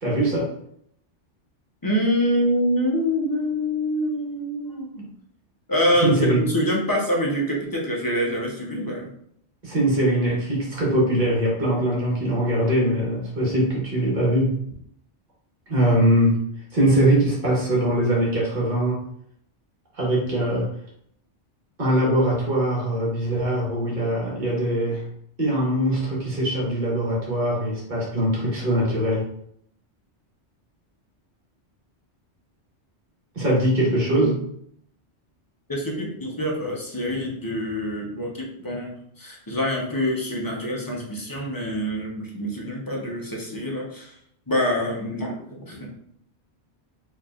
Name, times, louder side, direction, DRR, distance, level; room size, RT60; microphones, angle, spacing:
voice 1, 0.0-0.5 6.0-6.4 9.6-14.6 15.7-16.4 16.7-19.1 19.9-20.7 21.8-25.0 25.4-29.3 33.3-34.5, right 1 dB, 45° right, -5 dB, 1.5 m, -22 dB
voice 2, 1.8-5.1 5.7-9.1 35.7-44.1 44.5-45.9, equal, 20° left, -2 dB, 0.8 m, -25 dB
4.5 x 3.0 x 2.4 m, 0.69 s
omnidirectional pair, 1.2 m